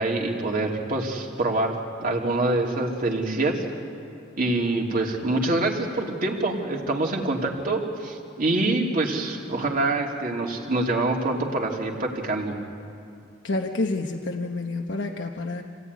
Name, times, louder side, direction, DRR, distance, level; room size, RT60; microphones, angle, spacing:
voice 1, 0.0-1.8 2.0-3.6 4.4-12.5, right 2 dB, 50° right, 0 dB, 2.9 m, -25 dB
voice 2, 13.4-15.6, left 2 dB, 75° left, 2 dB, 1.1 m, -28 dB
27.0 x 17.5 x 9.6 m, 2.6 s
head